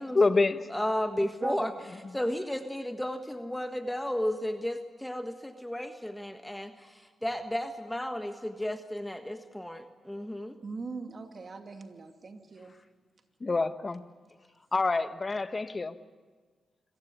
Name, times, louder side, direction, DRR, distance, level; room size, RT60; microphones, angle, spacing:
voice 1, 0.1-0.7 13.4-14.0 14.7-16.0, left 3 dB, 35° left, 12 dB, 1.2 m, -26 dB
voice 2, 0.7-1.7 2.1-10.6, left 1 dB, 10° left, 7 dB, 1.5 m, -33 dB
voice 3, 1.4-1.7 10.6-12.8, right 4 dB, 50° right, 6 dB, 2.5 m, -40 dB
26.0 x 15.5 x 9.5 m, 1.5 s
supercardioid pair, 50°, 0 cm